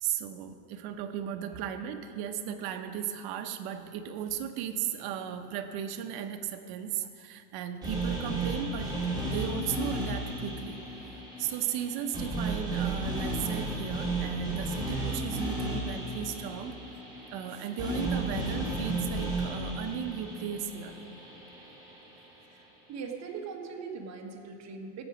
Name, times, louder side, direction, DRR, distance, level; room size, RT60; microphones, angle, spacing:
voice 1, 0.0-8.9 9.2-10.8 11.4-16.7 17.3-21.0, right 9 dB, 50° right, 7 dB, 0.9 m, -36 dB
sound 1, 7.8-22.0, right 2 dB, 10° right, 2.6 m, -34 dB
voice 2, 22.5-25.0, right 5 dB, 35° right, 2 dB, 1.3 m, -41 dB
16.0 x 8.2 x 5.0 m, 2.5 s
supercardioid pair, 150°, 48 cm